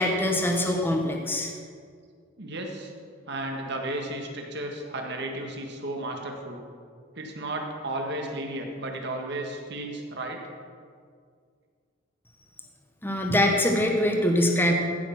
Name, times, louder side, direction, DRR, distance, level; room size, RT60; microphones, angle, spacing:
voice 1, 0.0-1.5 13.0-14.7, left 1 dB, 10° left, 1 dB, 1.1 m, -23 dB
voice 2, 2.4-2.9 3.2-6.6 7.1-10.4, right 1 dB, 55° right, 2 dB, 1.7 m, -33 dB
15.5 x 6.9 x 5.8 m, 2.1 s
head